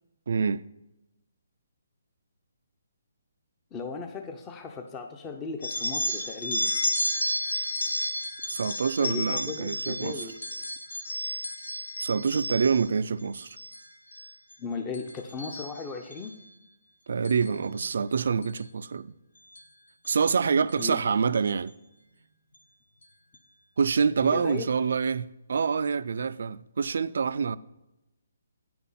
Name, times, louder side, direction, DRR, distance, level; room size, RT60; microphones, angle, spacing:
voice 1, 0.3-0.6 8.5-10.3 12.0-13.6 17.1-19.2 20.0-21.7 23.8-27.6, right 5 dB, 65° right, 0.4 m, -26 dB
voice 2, 3.7-6.7 9.0-10.4 14.6-16.4 20.8-21.0 24.2-24.7, left 4 dB, 20° left, 0.7 m, -36 dB
sound 1, 5.6-12.9 13.4-13.8 14.1-14.5 14.9-16.3 17.2-17.5 18.4-18.6 19.6-19.7 20.0-20.1 20.7-20.9, left 1 dB, 65° left, 1.4 m, -32 dB
9.2 x 6.0 x 5.6 m
hypercardioid pair, 150°, 0 cm